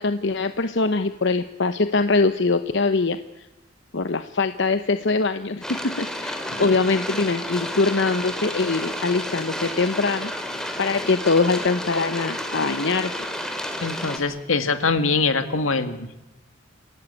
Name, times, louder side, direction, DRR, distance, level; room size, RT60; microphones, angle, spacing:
voice 1, 0.0-3.2 3.9-10.3 10.8-13.2, left 3 dB, 60° left, 10 dB, 0.9 m, -23 dB
sound 1, 5.6-14.2, left 1 dB, 5° left, 3.0 m, -31 dB
voice 2, 13.8-16.1, left 4 dB, 80° left, 9 dB, 2.1 m, -23 dB
28.5 x 16.0 x 9.7 m, 0.97 s
head